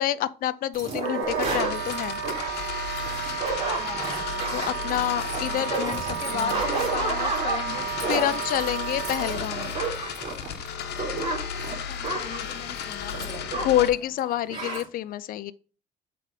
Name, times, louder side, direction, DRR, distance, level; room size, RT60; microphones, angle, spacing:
voice 1, 0.0-2.2 4.5-6.0 6.3-6.5 8.1-9.7 13.6-15.5, left 12 dB, 60° left, 0.4 m, -27 dB
sound 1, 0.7-13.9 14.2-14.3 14.5-14.8, right 3 dB, 40° right, 2.7 m, -32 dB
Wind instrument woodwind instrument, 1.0-9.3, right 9 dB, 65° right, 1.4 m, -33 dB
sound 2, 1.2-13.9, left 8 dB, 80° left, 1.0 m, -34 dB
voice 2, 3.8-5.2 5.7-8.4 11.7-13.8, left 6 dB, 35° left, 0.8 m, -37 dB
7.4 x 3.4 x 5.0 m
cardioid pair, 110°, 17 cm